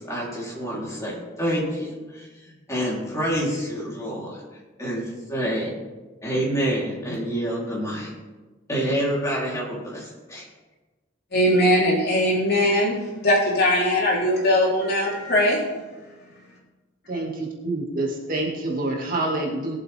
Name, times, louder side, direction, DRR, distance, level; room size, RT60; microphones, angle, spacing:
voice 1, 0.0-2.3 2.7-4.4 4.8-5.7 6.2-8.1 8.7-10.5, equal, 15° left, 3.7 m, -27 dB
voice 2, 11.3-15.6, left 1 dB, 55° left, 3.8 m, -20 dB
voice 3, 17.1-19.8, right 2 dB, 45° right, 2.2 m, -27 dB
21.5 x 7.7 x 3.6 m
head